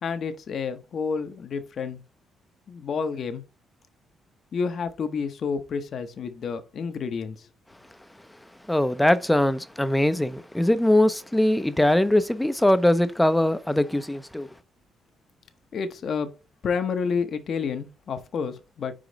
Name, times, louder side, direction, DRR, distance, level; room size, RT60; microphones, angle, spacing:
voice 1, 0.0-2.0 2.7-3.4 4.5-7.4 15.7-16.3 16.6-18.9, left 5 dB, 60° left, 0.8 m, -29 dB
voice 2, 8.7-14.5, left 1 dB, 5° left, 0.6 m, -21 dB
5.0 x 4.9 x 3.9 m
cardioid pair, 90°, 0 cm